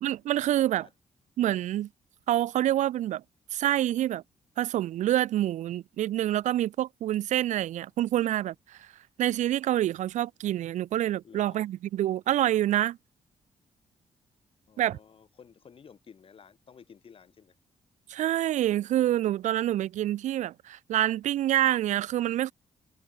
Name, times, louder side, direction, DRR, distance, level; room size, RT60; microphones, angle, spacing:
voice 1, 0.0-0.9 1.4-1.9 2.3-3.2 3.5-4.2 4.6-8.8 9.2-13.0 14.8-15.0 18.1-22.5, right 13 dB, 70° right, 0.4 m, -27 dB
voice 2, 11.2-11.7 14.7-17.6, left 6 dB, 45° left, 3.9 m, -53 dB
cardioid pair, 115°, 13 cm